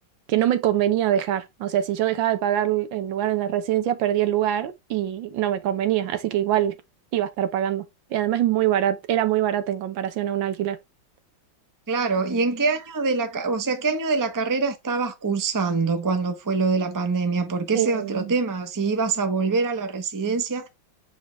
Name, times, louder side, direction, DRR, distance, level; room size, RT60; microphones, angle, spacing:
voice 1, 0.3-6.8 7.1-7.8 8.1-10.8 17.7-18.3, right 11 dB, 90° right, 1.6 m, -24 dB
voice 2, 11.9-20.7, right 4 dB, 20° right, 0.5 m, -24 dB
7.4 x 4.4 x 3.1 m
omnidirectional pair, 2.0 m